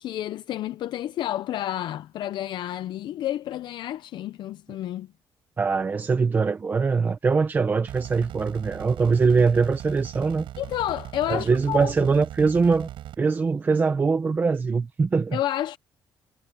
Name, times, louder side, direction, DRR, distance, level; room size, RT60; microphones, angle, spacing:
voice 1, 0.0-5.1 10.6-11.9 15.3-15.8, left 12 dB, 65° left, 0.5 m, -30 dB
voice 2, 5.6-10.5 11.3-12.9 13.2-15.4, right 4 dB, 20° right, 0.7 m, -22 dB
sound 1, 7.9-13.2, right 13 dB, 75° right, 7.7 m, -39 dB
cardioid pair, 180°, 8 cm